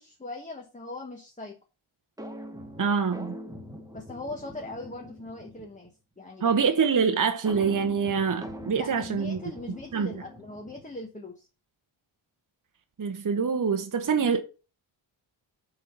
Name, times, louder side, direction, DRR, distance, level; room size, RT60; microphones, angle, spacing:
voice 1, 0.0-1.6 3.9-6.6 8.8-11.5, left 2 dB, 15° left, 1.3 m, -40 dB
sound 1, 2.2-5.9 7.5-11.1, equal, 5° right, 1.1 m, -43 dB
voice 2, 2.8-3.3 6.4-9.4 9.9-10.1 13.0-14.4, right 6 dB, 40° right, 0.9 m, -25 dB
7.2 x 3.9 x 5.9 m
wide cardioid pair, 105°, 49 cm